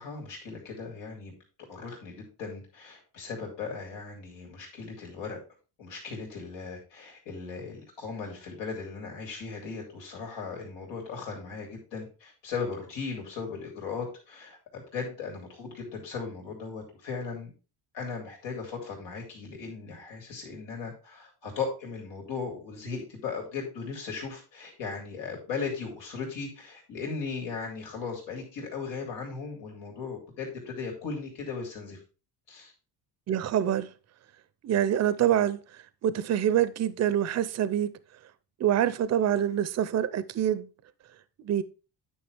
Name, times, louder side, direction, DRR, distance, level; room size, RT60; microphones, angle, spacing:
voice 1, 0.0-1.3 1.7-5.4 5.8-17.5 17.9-32.0 32.5-32.7, left 5 dB, 85° left, 3.1 m, -37 dB
voice 2, 33.3-33.9 34.6-35.6 36.0-37.9 38.6-40.7 41.4-41.6, right 10 dB, 40° right, 0.6 m, -25 dB
9.5 x 5.8 x 3.4 m
cardioid pair, 110°, 43 cm